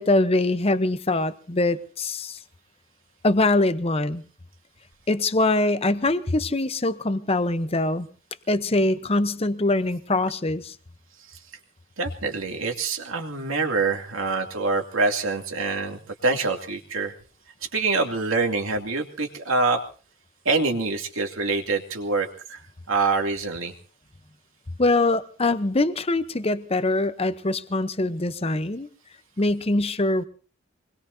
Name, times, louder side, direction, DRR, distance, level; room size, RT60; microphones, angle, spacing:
voice 1, 0.0-2.4 3.2-4.2 5.1-8.1 8.5-10.7 24.8-28.9 29.4-30.2, left 2 dB, 30° left, 0.8 m, -23 dB
voice 2, 12.0-17.1 17.7-19.8 20.4-23.7, right 3 dB, 85° right, 2.6 m, -25 dB
25.0 x 21.0 x 2.7 m
head